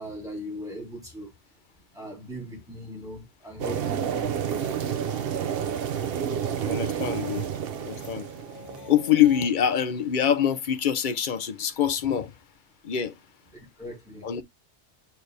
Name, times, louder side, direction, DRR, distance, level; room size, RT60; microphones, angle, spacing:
voice 1, 0.0-1.3 1.9-4.3 13.5-14.3, equal, 5° right, 3.9 m, -39 dB
sound 1, 3.6-9.0, right 8 dB, 60° right, 0.8 m, -30 dB
sound 2, 4.4-9.5, equal, 20° left, 1.4 m, -47 dB
voice 2, 6.6-7.5 7.8-8.3 8.9-12.3 12.8-13.1 14.2-14.4, left 9 dB, 50° left, 0.7 m, -24 dB
6.2 x 4.6 x 3.2 m
omnidirectional pair, 1.2 m